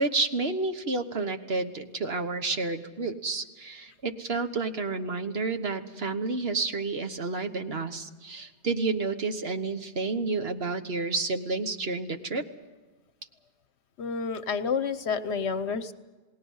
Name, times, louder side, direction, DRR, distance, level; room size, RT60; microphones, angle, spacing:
voice 1, 0.0-12.4, right 3 dB, 60° right, 7 dB, 1.5 m, -30 dB
voice 2, 14.0-15.9, left 5 dB, 70° left, 12 dB, 1.2 m, -29 dB
28.5 x 19.5 x 5.6 m, 1.3 s
omnidirectional pair, 1.2 m